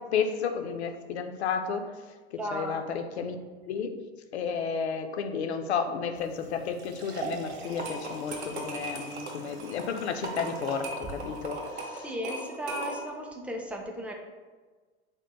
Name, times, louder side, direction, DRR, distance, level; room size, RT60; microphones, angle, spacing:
voice 1, 0.1-1.9 2.5-3.4 3.7-4.0 4.3-12.0, left 6 dB, 80° left, 7 dB, 0.5 m, -32 dB
voice 2, 2.3-2.8 11.9-14.1, equal, 5° right, 1 dB, 0.3 m, -35 dB
sound 1, 6.1-11.7, right 5 dB, 40° right, 0.9 m, -44 dB
sound 2, 7.6-13.2, right 2 dB, 85° right, 0.8 m, -38 dB
3.6 x 2.1 x 3.9 m, 1.4 s
hypercardioid pair, 85°, 32 cm